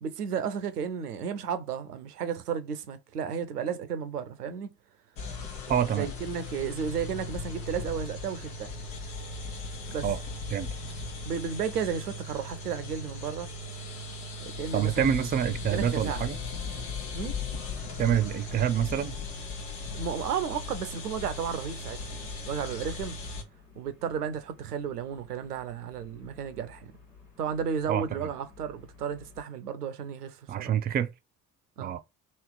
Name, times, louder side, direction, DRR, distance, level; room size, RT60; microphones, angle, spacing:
voice 1, 0.0-4.7 5.9-8.7 9.9-10.1 11.2-13.5 14.4-15.3 15.7-16.3 17.1-17.4 19.9-23.2 23.8-26.9 27.4-30.7 31.8-32.0, right 7 dB, 85° right, 0.6 m, -33 dB
sound 1, 5.2-23.4, left 3 dB, 70° left, 1.0 m, -38 dB
voice 2, 5.7-6.1 10.0-10.2 10.5-10.7 14.7-16.4 18.0-19.2 27.9-28.2 30.5-31.1 31.8-32.0, right 9 dB, 20° right, 0.4 m, -27 dB
sound 2, 10.7-29.4, left 4 dB, 90° left, 1.1 m, -55 dB
3.2 x 3.0 x 4.6 m
figure-of-eight pair, 50°, 45 cm